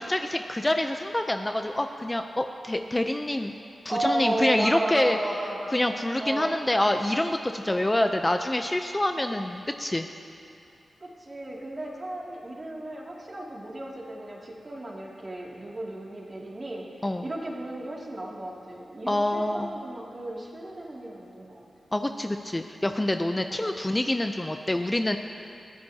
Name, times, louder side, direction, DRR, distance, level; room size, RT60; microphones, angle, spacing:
voice 1, 0.0-3.6 3.8-5.2 5.7-10.1 17.0-17.3 19.1-19.7 21.9-25.2, left 1 dB, 15° left, 6 dB, 0.5 m, -26 dB
voice 2, 3.9-5.7 6.2-6.6 7.6-7.9 11.0-16.9 17.2-21.6 23.4-23.8, right 1 dB, 35° right, -3 dB, 2.5 m, -34 dB
22.0 x 14.5 x 2.8 m, 2.6 s
wide cardioid pair, 85°, 0 cm